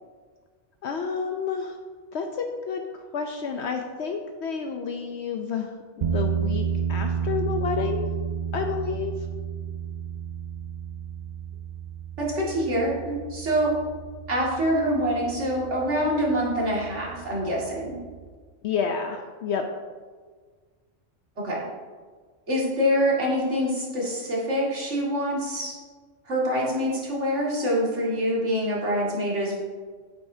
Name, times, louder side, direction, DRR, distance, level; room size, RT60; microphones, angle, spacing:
voice 1, 0.8-1.7 2.1-2.9 3.1-8.1 8.5-9.1 18.6-19.7, left 6 dB, 65° left, 4 dB, 0.8 m, -30 dB
sound 1, 6.0-18.3, right 7 dB, 90° right, 0.3 m, -32 dB
voice 2, 12.2-13.8 14.3-18.0 21.4-21.6 22.5-25.7 26.3-29.6, equal, 70° right, -5 dB, 2.4 m, -25 dB
9.0 x 8.6 x 2.7 m, 1.5 s
omnidirectional pair, 1.3 m